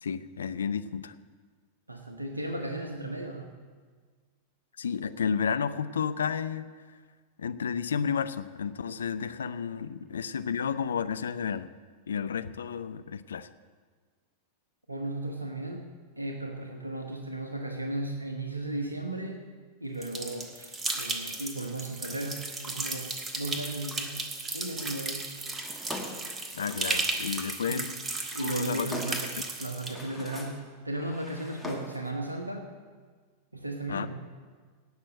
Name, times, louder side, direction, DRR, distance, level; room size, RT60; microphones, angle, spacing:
voice 1, 0.0-1.1 4.8-6.7 7.4-11.7 12.1-13.5 26.5-27.9 28.4-28.9 33.9-34.1, left 7 dB, 70° left, 12 dB, 0.5 m, -31 dB
voice 2, 1.9-3.5 14.9-15.9 16.2-19.5 19.8-25.4 27.7-27.9 28.3-29.3 29.6-32.7 33.5-34.3, right 2 dB, 85° right, 4 dB, 1.1 m, -35 dB
sound 1, 20.0-29.9, right 3 dB, 20° right, 1.4 m, -35 dB
Drawer open or close, 25.5-27.3 28.1-29.4 29.8-30.7 31.0-32.1, left 1 dB, ahead, 1.9 m, -42 dB
17.5 x 6.3 x 7.7 m, 1.5 s
figure-of-eight pair, 90°, 0 cm